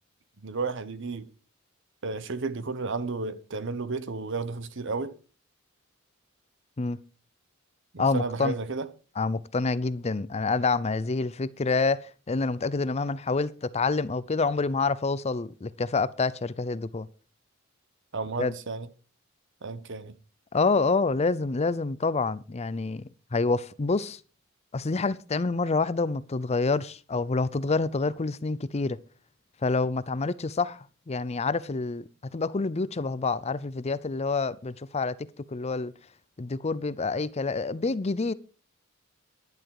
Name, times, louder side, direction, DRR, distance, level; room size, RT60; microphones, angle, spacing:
voice 1, 0.4-1.3 2.0-5.2 7.9-8.9 18.1-18.9 19.6-20.2, right 3 dB, 60° right, 1.1 m, -32 dB
voice 2, 8.0-8.5 9.2-17.1 18.4-18.5 20.5-23.0 23.3-24.2 24.7-29.0 29.6-35.2 35.5-35.9 36.4-38.3, left 3 dB, 30° left, 0.5 m, -27 dB
11.0 x 11.0 x 4.8 m
head